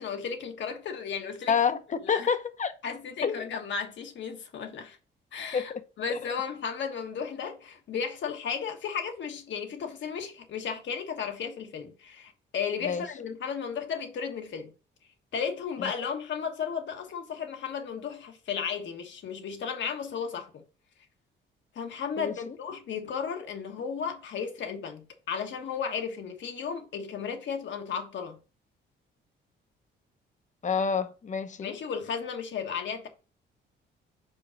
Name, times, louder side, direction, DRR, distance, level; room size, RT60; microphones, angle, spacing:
voice 1, 0.0-1.6 2.0-2.3 2.8-5.0 5.3-14.7 15.3-20.6 21.7-28.4 31.6-33.1, left 6 dB, 65° left, 1.4 m, -34 dB
voice 2, 1.5-2.7 3.2-3.5 5.5-5.8 6.1-6.2 12.8-13.0 15.8-15.9 22.2-22.6 30.6-31.8, left 6 dB, 40° left, 0.9 m, -28 dB
5.2 x 4.6 x 4.5 m
cardioid pair, 90°, 20 cm